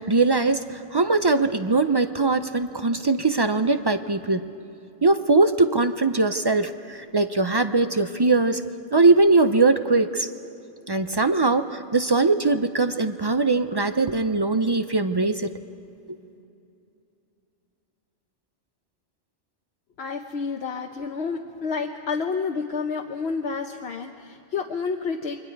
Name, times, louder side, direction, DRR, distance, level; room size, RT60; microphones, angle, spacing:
voice 1, 0.0-4.5 5.0-8.6 8.9-10.3 10.9-15.5, right 3 dB, 35° right, 10 dB, 0.4 m, -21 dB
voice 2, 20.0-25.4, left 5 dB, 70° left, 3 dB, 1.0 m, -29 dB
29.0 x 22.5 x 4.7 m, 2.8 s
omnidirectional pair, 1.2 m